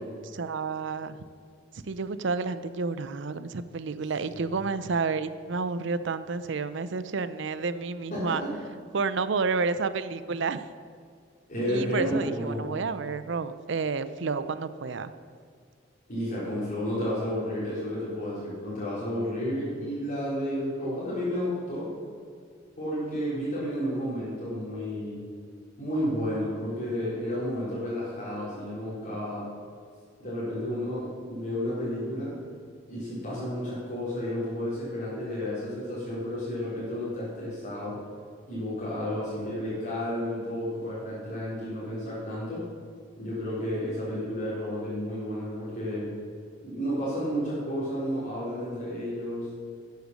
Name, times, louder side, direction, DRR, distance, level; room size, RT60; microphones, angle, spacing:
voice 1, 0.3-1.2 1.7-8.4 8.9-10.6 11.7-15.1, right 4 dB, 65° right, 13 dB, 0.6 m, -30 dB
voice 2, 4.3-4.6 8.1-8.5 11.5-12.7 16.1-22.0 22.8-25.3 25.8-29.5 30.2-32.4 32.9-38.0 38.5-42.6 43.2-46.1 46.6-49.5, equal, 45° left, -10 dB, 3.7 m, -31 dB
11.5 x 8.0 x 6.5 m, 2.1 s
head